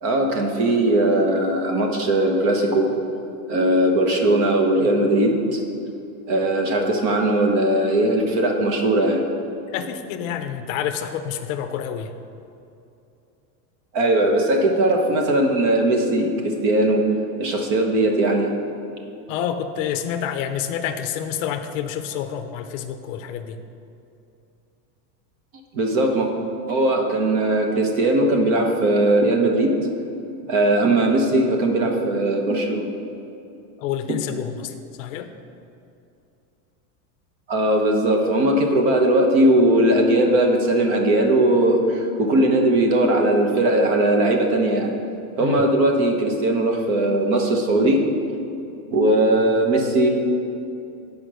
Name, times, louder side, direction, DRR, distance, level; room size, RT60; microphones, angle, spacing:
voice 1, 0.0-2.9 3.5-5.6 6.3-9.2 13.9-17.0 17.4-18.5 25.7-26.3 26.7-29.7 30.5-32.9 34.1-34.2 37.5-44.9 45.4-48.0 48.9-50.1, right 1 dB, 45° right, 2 dB, 1.1 m, -19 dB
voice 2, 9.7-12.1 19.3-23.6 33.8-35.3 45.4-45.6, left 9 dB, 55° left, 8 dB, 0.6 m, -28 dB
8.5 x 5.0 x 6.2 m, 2.7 s
supercardioid pair, 175°, 47 cm